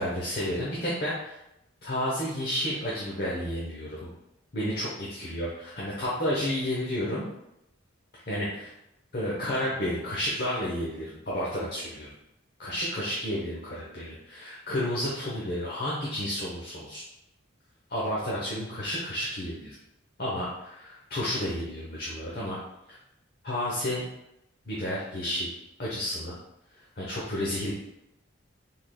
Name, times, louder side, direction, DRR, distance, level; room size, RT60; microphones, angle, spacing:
voice 1, 0.0-1.4 1.8-4.1 4.5-7.3 8.3-8.7 9.1-12.1 12.6-17.0 17.9-19.8 20.2-22.6 23.4-24.0 24.7-25.5 25.8-26.3 27.0-27.7, equal, 45° left, -6 dB, 0.9 m, -31 dB
6.3 x 3.7 x 2.3 m, 0.85 s
head